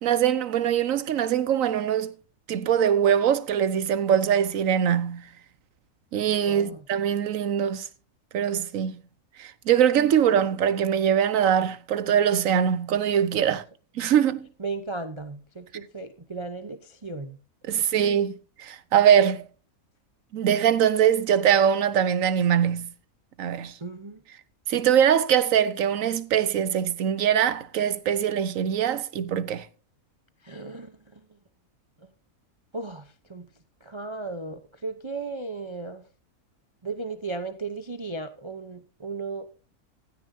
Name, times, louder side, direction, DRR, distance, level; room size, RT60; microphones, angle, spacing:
voice 1, 0.0-2.1 2.5-5.3 6.1-7.9 8.3-9.0 9.4-13.6 14.0-14.5 17.6-19.5 20.3-22.9 23.4-23.7 24.7-29.7, right 9 dB, 65° right, 1.2 m, -22 dB
voice 2, 6.3-6.8 13.5-13.6 14.6-17.4 17.9-18.2 23.8-24.2 30.4-31.2 32.7-33.5 33.8-36.0 36.8-39.5, right 3 dB, 25° right, 0.6 m, -36 dB
15.5 x 13.5 x 2.7 m
omnidirectional pair, 1.6 m